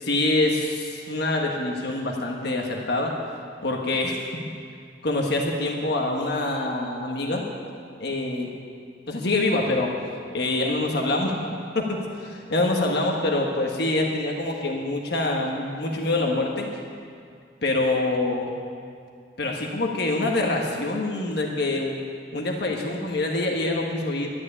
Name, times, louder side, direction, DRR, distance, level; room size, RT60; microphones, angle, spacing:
voice 1, 0.0-3.1 3.6-4.2 5.0-7.5 8.0-8.5 9.1-9.9 10.3-11.3 11.7-16.7 17.6-18.5 19.4-21.9 22.3-24.3, left 2 dB, 55° left, 0 dB, 1.4 m, -25 dB
12.5 x 9.6 x 9.9 m, 2.3 s
head